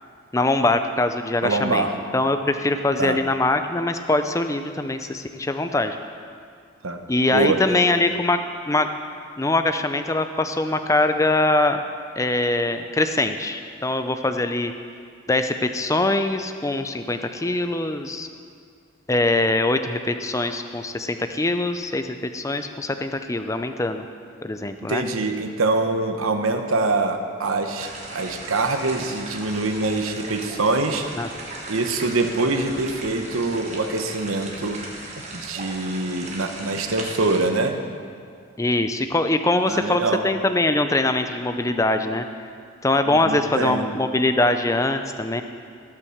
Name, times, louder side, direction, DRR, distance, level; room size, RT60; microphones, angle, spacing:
voice 1, 0.3-1.9 2.1-6.0 7.1-8.4 8.7-8.9 9.4-11.8 12.2-14.7 15.3-18.3 19.1-24.1 24.4-25.0 31.2-31.3 38.6-42.3 42.8-45.4, left 2 dB, 15° left, 8 dB, 0.5 m, -22 dB
voice 2, 1.4-1.9 3.0-3.2 6.8-7.0 7.3-7.6 24.8-31.0 31.7-34.8 35.3-37.8 39.7-40.2 43.1-43.9, right 3 dB, 90° right, 6 dB, 1.0 m, -24 dB
sound 1, 27.8-37.5, right 2 dB, 35° right, 1.4 m, -37 dB
16.5 x 6.0 x 6.5 m, 2.2 s
head